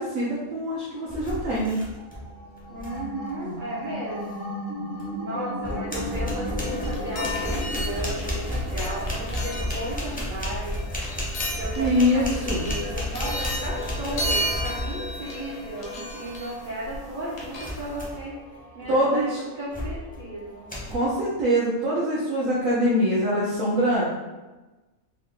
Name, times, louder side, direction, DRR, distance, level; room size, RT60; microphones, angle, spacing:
voice 1, 0.0-1.8 11.8-12.7 18.9-19.4 20.9-24.0, equal, 80° right, -8 dB, 1.2 m, -23 dB
sound 1, 1.1-2.3 2.6-3.1 5.0-5.1 5.6-15.2 17.6-18.3 18.8-19.1 19.7-20.2 20.7-20.9, left 1 dB, 10° left, 0.4 m, -32 dB
sound 2, 1.9-21.1, left 1 dB, 55° left, 0.7 m, -38 dB
voice 2, 2.7-4.5 5.2-10.8 11.5-18.4 18.7-20.7, right 1 dB, 55° right, -6 dB, 0.6 m, -35 dB
sound 3, 6.6-18.1, equal, 75° left, 1.1 m, -34 dB
3.6 x 2.1 x 3.6 m, 1.1 s
omnidirectional pair, 1.4 m